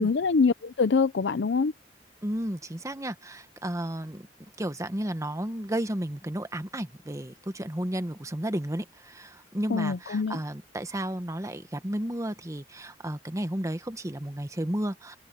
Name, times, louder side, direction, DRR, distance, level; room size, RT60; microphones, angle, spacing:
voice 1, 0.0-1.7 9.7-10.4, left 4 dB, 75° left, 0.5 m, -24 dB
voice 2, 2.2-4.3 4.6-15.2, right 1 dB, 20° right, 1.2 m, -33 dB
head